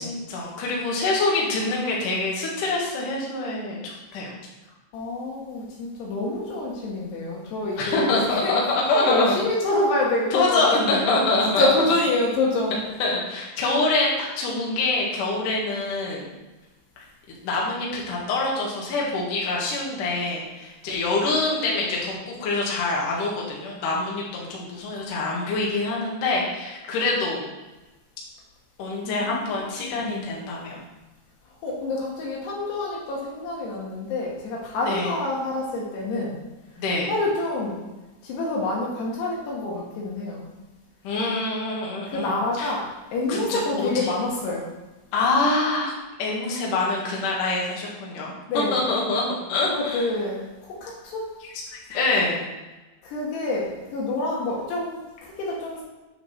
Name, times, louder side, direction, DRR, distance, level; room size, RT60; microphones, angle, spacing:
voice 1, 0.0-4.3 7.8-9.4 10.3-11.7 13.0-16.2 17.0-17.1 17.4-27.4 28.8-30.8 34.9-35.1 36.8-37.1 41.0-42.7 43.3-44.1 45.1-45.9 46.2-48.3 48.7-49.2 49.5-50.1 51.7-52.4, left 3 dB, 55° left, -4 dB, 2.9 m, -25 dB
voice 2, 4.9-8.5 8.9-11.2 11.6-12.8 29.0-30.4 31.6-36.4 37.1-37.9 38.2-40.5 42.1-44.7 48.5-48.8 49.7-51.3 53.0-55.8, left 2 dB, 70° left, -3 dB, 3.4 m, -27 dB
9.5 x 6.7 x 4.4 m, 1.1 s
omnidirectional pair, 5.2 m